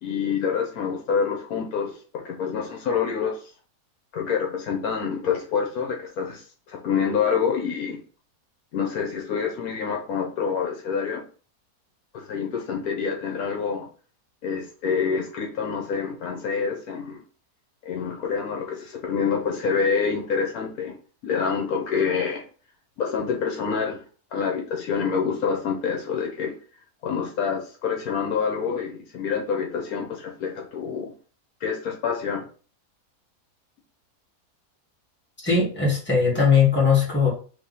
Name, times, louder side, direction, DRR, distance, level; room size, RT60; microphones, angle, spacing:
voice 1, 0.0-3.4 4.1-8.0 8.7-11.2 12.1-13.9 14.4-17.2 17.8-21.0 21.2-22.4 23.0-24.0 24.3-26.5 27.0-31.1 31.6-32.5, left 6 dB, 70° left, 1 dB, 1.2 m, -27 dB
voice 2, 35.4-37.3, left 5 dB, 5° left, -5 dB, 1.4 m, -19 dB
3.5 x 3.0 x 4.0 m, 0.40 s
omnidirectional pair, 1.7 m